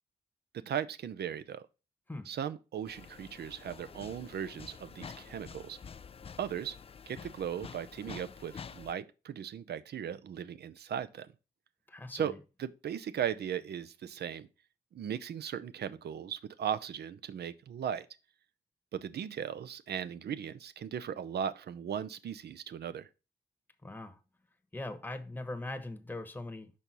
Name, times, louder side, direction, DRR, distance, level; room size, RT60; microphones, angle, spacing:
voice 1, 0.5-1.6 2.3-5.8 6.4-6.7 7.1-11.3 12.1-12.3 12.6-14.5 14.9-18.1 18.9-23.1, right 8 dB, 70° right, 0.6 m, -37 dB
sound 1, 2.9-8.9, left 6 dB, 35° left, 0.4 m, -48 dB
voice 2, 11.9-12.4 23.8-24.2 24.7-26.7, left 2 dB, 10° left, 1.0 m, -41 dB
5.4 x 4.3 x 6.1 m
supercardioid pair, 50°, 18 cm